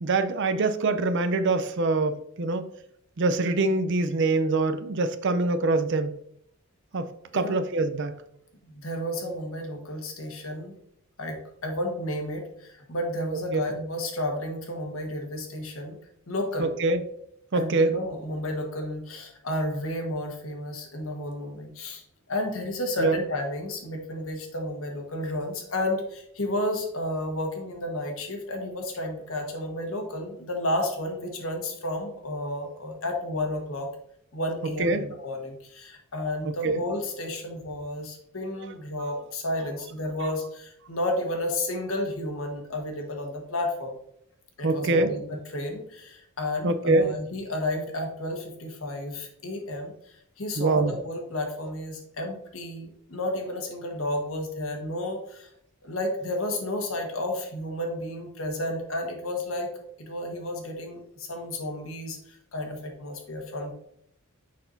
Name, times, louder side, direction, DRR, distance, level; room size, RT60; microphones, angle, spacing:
voice 1, 0.0-2.6 3.2-6.1 6.9-8.1 13.5-13.6 16.6-17.0 17.5-17.9 23.0-23.2 34.8-35.1 36.4-36.8 38.6-38.7 40.2-40.3 44.6-45.1 46.6-47.1 50.6-51.0, right 3 dB, 55° right, 9 dB, 0.6 m, -24 dB
voice 2, 8.6-10.7 11.2-16.0 16.3-16.7 17.5-22.0 22.3-33.9 34.3-43.9 44.6-55.5 55.8-59.7 60.0-63.7, left 1 dB, 70° left, 2 dB, 1.4 m, -32 dB
6.6 x 5.7 x 2.7 m, 0.72 s
head